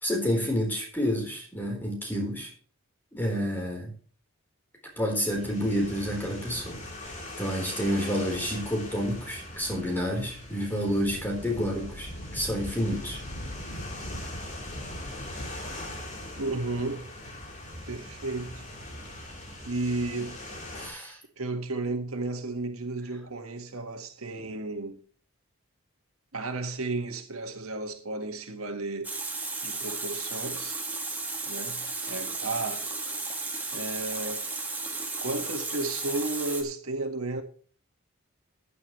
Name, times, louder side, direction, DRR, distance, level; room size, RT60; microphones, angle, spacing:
voice 1, 0.0-2.5 3.1-3.9 5.0-6.8 7.4-13.2 20.7-21.2, equal, 10° left, 4.2 m, -29 dB
sound 1, 5.3-20.9, left 1 dB, 35° left, 3.7 m, -41 dB
Wind, 11.3-16.0, equal, 80° left, 2.2 m, -41 dB
voice 2, 16.4-17.1 17.9-18.6 19.6-20.4 21.4-25.0 26.3-29.2 29.6-30.8 31.5-32.9 33.7-34.5 35.2-37.4, right 2 dB, 90° right, 1.7 m, -33 dB
Water tap faucet, 29.0-36.6, right 3 dB, 10° right, 1.8 m, -34 dB
14.5 x 9.7 x 3.2 m
head